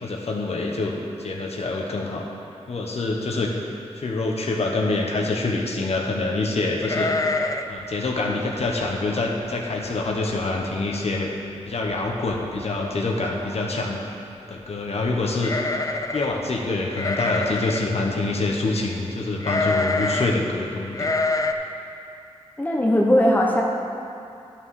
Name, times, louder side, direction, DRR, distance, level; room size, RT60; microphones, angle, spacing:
voice 1, 0.0-2.2 2.7-3.5 3.9-7.1 7.7-11.3 11.7-14.0 14.5-15.5 16.1-21.1, left 2 dB, 65° left, 0 dB, 1.0 m, -26 dB
sound 1, 6.8-7.8 8.0-8.1 8.6-8.9 9.4-9.5 9.8-10.3 10.7-10.8 11.9-12.0 12.3-12.7 15.4-16.4 17.0-17.9 19.4-20.4 20.9-21.5, left 3 dB, 30° left, 0.5 m, -25 dB
voice 2, 22.6-23.6, equal, 15° left, -1 dB, 1.1 m, -19 dB
11.5 x 5.8 x 4.8 m, 2.6 s
wide cardioid pair, 95°, 12 cm